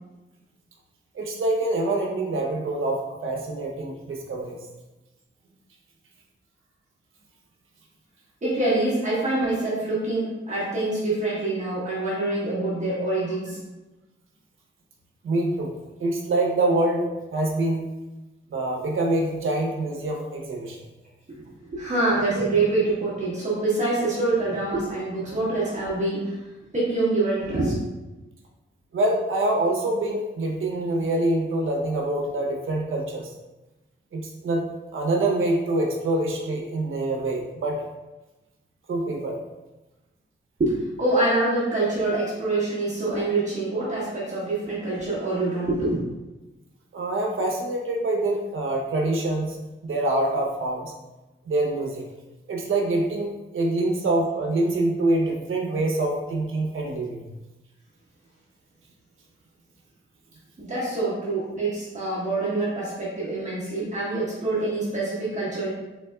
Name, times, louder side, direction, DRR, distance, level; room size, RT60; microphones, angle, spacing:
voice 1, 1.1-4.6 15.2-15.7 16.0-17.1 17.3-17.8 18.5-20.8 28.9-33.3 34.1-34.6 34.9-37.8 38.9-39.4 46.9-49.6 49.8-50.9 51.5-52.0 52.5-57.2, right 2 dB, 80° right, 1 dB, 0.7 m, -25 dB
voice 2, 8.4-13.6 21.3-26.4 26.7-27.7 40.6-46.0 60.6-65.7, right 2 dB, 35° right, -9 dB, 1.1 m, -25 dB
4.1 x 3.6 x 2.3 m, 1.1 s
wide cardioid pair, 160°, 20 cm